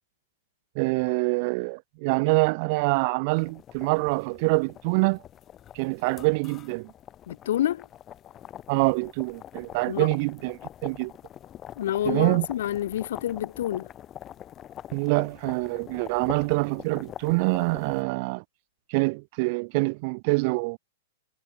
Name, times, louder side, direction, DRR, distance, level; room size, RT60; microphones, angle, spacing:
voice 1, 0.7-5.2 5.7-6.9 8.7-11.1 12.0-12.5 14.9-18.4 18.9-20.8, right 30 dB, 45° right, 1.6 m, -25 dB
sound 1, 3.3-18.0, left 11 dB, 25° left, 2.7 m, -44 dB
voice 2, 7.3-7.8 9.9-10.1 11.8-13.9, left 12 dB, 70° left, 2.6 m, -28 dB
hypercardioid pair, 140°, 0 cm